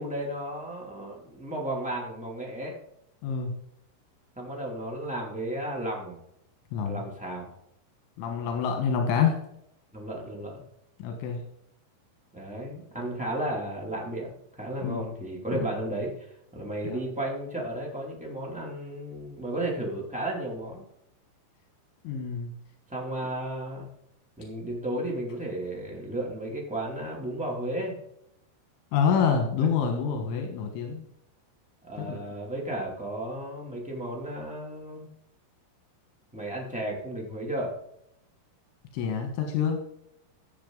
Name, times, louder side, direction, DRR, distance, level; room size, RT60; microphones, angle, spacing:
voice 1, 0.0-2.7 4.3-6.2 6.8-7.5 9.9-10.5 12.3-20.8 22.9-23.9 24.4-27.9 29.6-29.7 31.8-35.1 36.3-37.7, right 1 dB, 5° right, -2 dB, 0.6 m, -34 dB
voice 2, 3.2-3.5 6.7-7.0 8.2-9.3 11.0-11.4 14.8-15.0 15.5-15.7 16.8-17.0 22.1-22.5 28.9-31.1 32.0-32.2 38.9-39.8, left 6 dB, 85° left, 3 dB, 3.8 m, -27 dB
15.0 x 7.5 x 3.9 m, 0.77 s
omnidirectional pair, 5.4 m